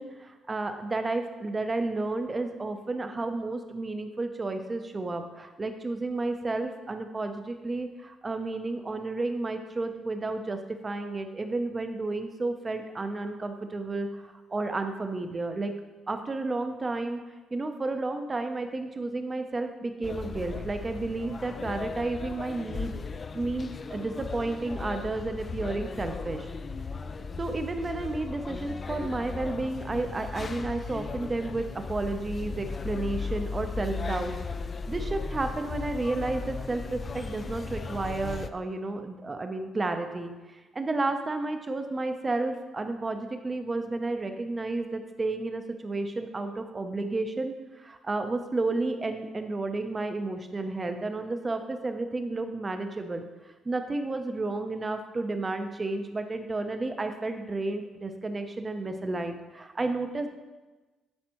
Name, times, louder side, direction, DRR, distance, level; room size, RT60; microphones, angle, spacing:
voice 1, 0.0-15.7 16.1-17.2 17.5-22.9 23.3-26.5 27.4-34.3 34.9-53.3 53.6-60.3, right 2 dB, 25° right, 7 dB, 0.6 m, -32 dB
sound 1, 20.0-38.5, left 4 dB, 40° left, 0.3 m, -36 dB
9.6 x 4.1 x 3.0 m, 1.2 s
cardioid pair, 90°, 0 cm